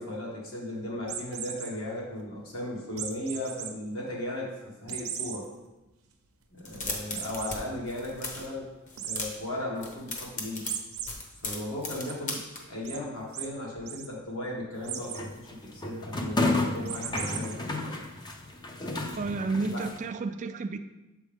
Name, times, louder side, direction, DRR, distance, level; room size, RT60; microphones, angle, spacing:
voice 1, 0.0-4.5 4.8-5.5 6.5-8.7 9.0-10.7 11.4-17.9 18.8-19.9, left 1 dB, 70° left, -4 dB, 1.7 m, -36 dB
sound 1, 1.0-1.7 3.0-3.7 4.1-4.2 4.9-5.4 5.9-6.0 6.2-6.3 7.1-7.6 9.0-9.2 10.6-11.1 11.5-12.1 12.8-13.0 13.3-13.5 13.8-14.1 14.8-15.2 16.8-17.5, right 9 dB, 85° right, 0.7 m, -37 dB
sound 2, 6.6-7.6 7.8-8.5 8.9-9.5 9.8-12.6, left 3 dB, 35° left, 1.0 m, -36 dB
sound 3, 14.8-20.0, left 2 dB, 20° left, 0.5 m, -32 dB
voice 2, 19.2-20.8, right 3 dB, 35° right, 9 dB, 0.3 m, -31 dB
7.2 x 4.6 x 3.5 m, 1.0 s
head